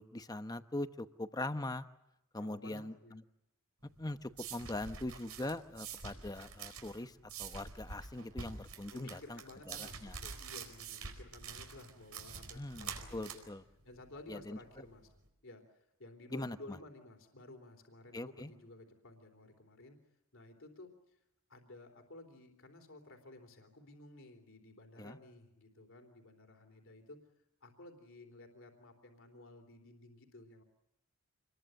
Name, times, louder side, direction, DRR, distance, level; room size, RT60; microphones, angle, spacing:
voice 1, 0.0-1.9 2.3-3.2 4.0-9.4 9.7-10.2 12.5-13.6 14.3-14.6 16.3-16.8 18.1-18.5 25.0-25.2, left 2 dB, 15° left, 10 dB, 0.9 m, -42 dB
voice 2, 2.4-3.2 8.9-13.5 13.8-15.1 15.4-20.0 20.3-21.2 21.5-27.2 27.6-30.6, left 2 dB, 60° left, 5 dB, 3.5 m, -54 dB
sound 1, 3.8-15.2, right 5 dB, 80° right, 4.4 m, -47 dB
27.0 x 21.5 x 7.8 m, 0.86 s
head